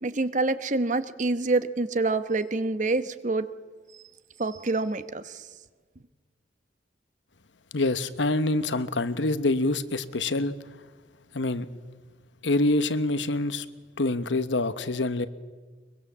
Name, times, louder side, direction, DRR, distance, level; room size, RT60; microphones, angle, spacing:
voice 1, 0.0-3.5 4.4-5.4, right 3 dB, 45° right, 12 dB, 1.0 m, -26 dB
voice 2, 7.7-10.5 11.3-11.7 12.4-13.7 14.0-15.3, left 2 dB, 85° left, 12 dB, 1.1 m, -26 dB
22.5 x 22.5 x 7.3 m, 1.4 s
head